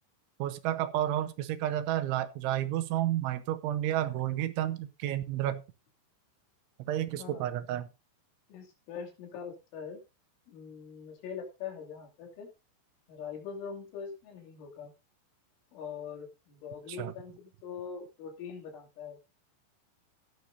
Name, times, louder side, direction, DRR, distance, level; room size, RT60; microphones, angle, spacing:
voice 1, 0.4-5.6 6.9-7.9 17.0-17.1, right 12 dB, 80° right, 11 dB, 3.1 m, -31 dB
voice 2, 6.9-7.4 8.5-10.0 10.5-12.5 13.1-14.9 15.7-19.2, left 6 dB, 75° left, 1 dB, 5.1 m, -43 dB
16.0 x 10.5 x 2.7 m, 0.27 s
omnidirectional pair, 5.6 m